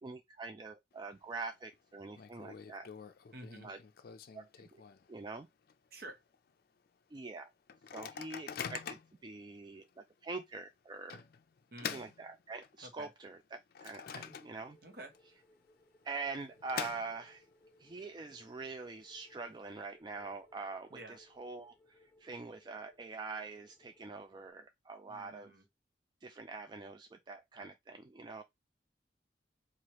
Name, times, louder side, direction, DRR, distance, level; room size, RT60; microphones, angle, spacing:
voice 1, 0.0-2.9 3.6-3.8 4.3-4.8 5.1-5.5 7.1-7.5 7.9-11.2 11.9-14.8 16.0-17.4 17.8-21.0 21.4-25.5 26.2-28.4, right 3 dB, 25° right, 0.3 m, -44 dB
Microwave oven, 0.9-1.4 1.7-1.8 2.1-5.2 5.7-5.8 6.0-6.3 6.9-7.0 7.7-9.2 9.8-10.0 11.1-12.9 13.4-14.9 15.1-15.2 16.1-17.5, left 7 dB, 55° left, 0.4 m, -45 dB
voice 2, 3.3-3.7 5.9-6.2 11.7-12.0 12.8-13.1 14.8-15.2 20.9-21.2 25.1-25.7, right 2 dB, 60° right, 1.1 m, -49 dB
sound 1, 14.2-24.5, left 1 dB, 10° left, 0.7 m, -67 dB
4.7 x 2.4 x 2.9 m
head